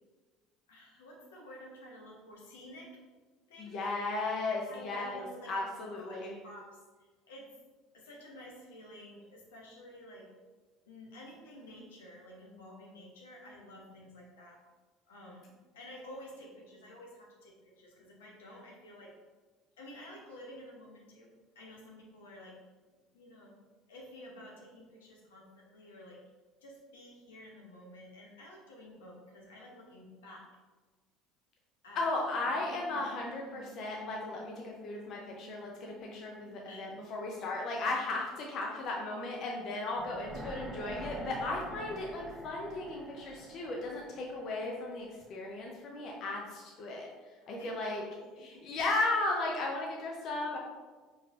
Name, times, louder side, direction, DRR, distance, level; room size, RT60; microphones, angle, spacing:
voice 1, 0.7-3.0 3.5-3.8 4.7-7.5 7.9-10.3 10.8-14.6 15.1-19.1 19.8-21.3 21.5-22.6 23.1-23.5 23.9-26.2 26.6-30.5 31.8-32.0 36.7-36.9 47.6-47.7 48.2-48.4, left 1 dB, 85° left, -2 dB, 0.8 m, -51 dB
voice 2, 3.6-6.3 31.9-48.0 48.4-50.6, left 2 dB, 55° left, -1 dB, 0.6 m, -36 dB
sound 1, 32.1-38.5, right 3 dB, 40° right, 0.7 m, -55 dB
sound 2, 40.0-45.1 45.4-45.5, right 1 dB, 15° right, 0.8 m, -46 dB
4.4 x 3.1 x 2.5 m, 1.3 s
hypercardioid pair, 70°, 0 cm